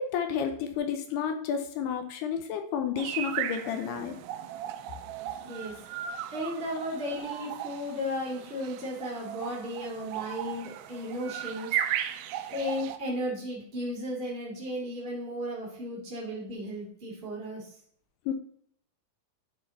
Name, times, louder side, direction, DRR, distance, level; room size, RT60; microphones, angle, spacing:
voice 1, 0.0-4.2 18.3-18.4, left 7 dB, 80° left, 6 dB, 2.6 m, -31 dB
sound 1, 3.0-13.0, right 11 dB, 85° right, 2.6 m, -36 dB
voice 2, 5.4-5.7 6.3-11.7 12.5-17.7, equal, 65° right, -4 dB, 0.5 m, -35 dB
11.5 x 3.9 x 4.0 m, 0.63 s
omnidirectional pair, 4.9 m